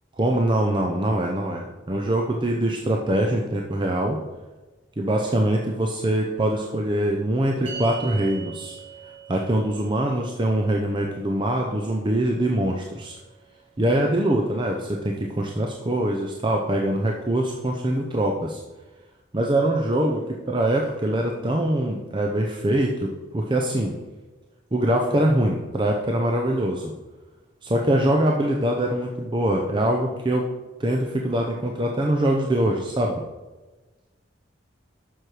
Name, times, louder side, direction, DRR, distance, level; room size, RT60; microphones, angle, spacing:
voice 1, 0.2-4.2 5.0-8.8 9.3-13.2 13.8-18.6 19.3-23.9 24.7-26.9 27.6-30.5 30.8-33.2, right 1 dB, 25° right, 1 dB, 0.6 m, -23 dB
sound 1, 7.7-14.2, right 6 dB, 65° right, 2.2 m, -43 dB
7.8 x 6.2 x 4.8 m, 1.2 s
head